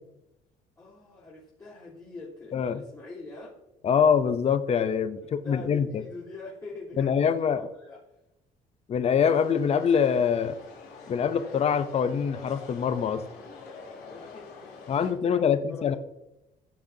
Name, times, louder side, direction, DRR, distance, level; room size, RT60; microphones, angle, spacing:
voice 1, 0.8-3.6 5.2-8.0 14.1-16.0, left 3 dB, 20° left, -9 dB, 3.5 m, -44 dB
voice 2, 2.5-2.8 3.8-6.0 7.0-7.6 8.9-10.6 11.1-13.2 14.9-16.0, left 7 dB, 40° left, 11 dB, 0.7 m, -24 dB
sound 1, 9.2-15.1, left 4 dB, 80° left, 3.4 m, -46 dB
14.5 x 7.2 x 2.8 m, 0.93 s
cardioid pair, 110°, 17 cm